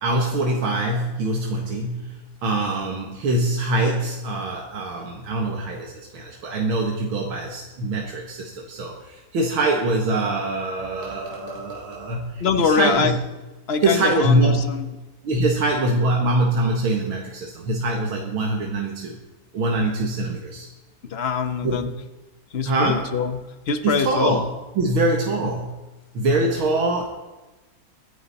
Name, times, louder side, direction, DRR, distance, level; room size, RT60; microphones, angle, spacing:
voice 1, 0.0-13.2 13.8-14.7 15.2-19.2 19.5-20.7 21.6-21.9 22.7-23.1 23.8-24.4 24.8-25.8 26.1-27.0, right 2 dB, 80° right, 0 dB, 2.5 m, -23 dB
voice 2, 12.4-13.1 13.7-14.9 21.0-21.9 22.5-24.5, left 6 dB, 45° left, 9 dB, 0.9 m, -24 dB
22.5 x 10.5 x 4.2 m, 1.1 s
omnidirectional pair, 2.2 m